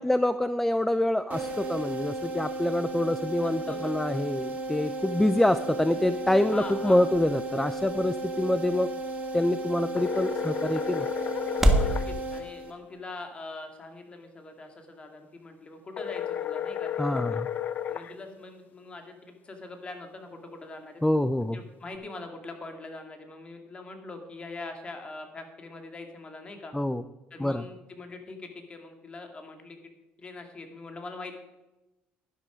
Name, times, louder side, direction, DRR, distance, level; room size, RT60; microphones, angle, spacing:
voice 1, 0.0-8.9 9.3-11.1 17.0-17.5 21.0-21.6 26.7-27.0 27.4-27.6, left 1 dB, 5° left, 12 dB, 0.4 m, -26 dB
sound 1, 1.3-13.0, right 2 dB, 40° right, 3.1 m, -35 dB
voice 2, 3.4-4.0 6.5-7.1 11.5-17.4 17.9-21.0 21.5-26.7 27.3-29.8 30.2-31.4, left 3 dB, 25° left, 5 dB, 2.3 m, -43 dB
sound 2, 5.7-12.0, equal, 10° right, 1.5 m, -31 dB
sound 3, 10.0-12.1 16.0-18.1, left 9 dB, 45° left, 0.7 m, -32 dB
11.5 x 11.0 x 5.1 m, 0.99 s
cardioid pair, 110°, 4 cm